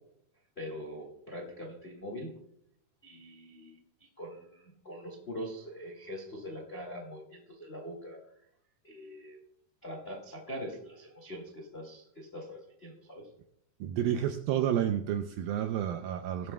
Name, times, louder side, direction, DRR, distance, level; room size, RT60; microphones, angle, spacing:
voice 1, 0.6-2.3 3.0-3.8 4.2-8.2 8.8-9.4 9.8-13.3, equal, 65° left, 0 dB, 0.6 m, -43 dB
voice 2, 13.8-16.5, right 10 dB, 85° right, 7 dB, 2.1 m, -30 dB
18.0 x 12.0 x 2.2 m, 0.74 s
omnidirectional pair, 4.8 m